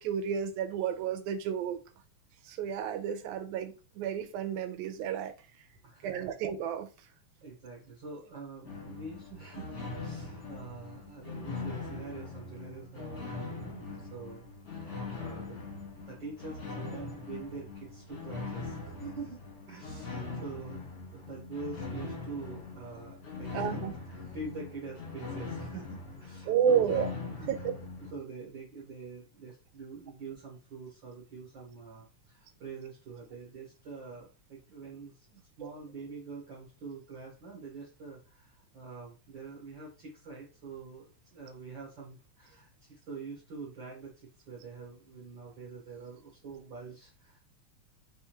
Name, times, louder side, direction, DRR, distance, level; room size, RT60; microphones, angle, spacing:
voice 1, 0.0-1.8 2.5-5.3 6.0-6.9 23.5-23.9 26.5-27.1 27.5-27.7 35.6-35.7, right 8 dB, 85° right, 2.1 m, -31 dB
voice 2, 5.8-6.4 7.4-15.6 16.0-27.6 28.0-47.4, right 4 dB, 55° right, 1.5 m, -45 dB
sound 1, 8.6-28.1, left 3 dB, 40° left, 1.1 m, -41 dB
4.9 x 3.5 x 2.9 m
omnidirectional pair, 3.4 m